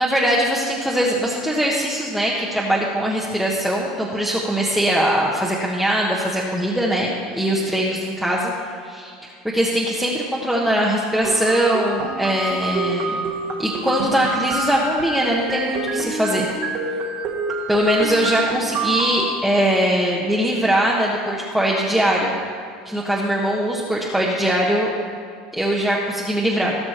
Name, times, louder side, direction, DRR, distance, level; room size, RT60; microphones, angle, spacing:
voice 1, 0.0-8.5 8.8-13.1 13.6-16.5 17.7-22.3 22.8-24.9 25.5-26.8, right 1 dB, ahead, -5 dB, 1.3 m, -21 dB
sound 1, 11.2-19.2, right 3 dB, 55° right, 1.8 m, -27 dB
18.0 x 6.1 x 4.5 m, 2.3 s
supercardioid pair, 115°, 3 cm